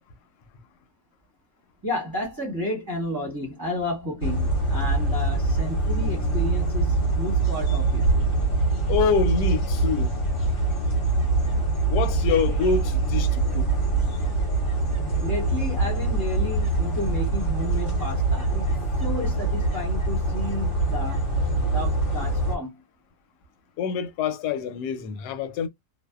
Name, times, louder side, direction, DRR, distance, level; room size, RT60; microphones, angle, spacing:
voice 1, 1.8-8.0 15.2-18.7 19.0-21.2 21.7-22.7, left 1 dB, 15° right, 0.8 m, -32 dB
sound 1, 4.2-22.6, right 3 dB, 50° left, 1.1 m, -24 dB
voice 2, 8.9-10.1 11.9-13.8 23.8-25.7, left 6 dB, 90° left, 1.2 m, -26 dB
2.6 x 2.2 x 2.3 m
omnidirectional pair, 1.7 m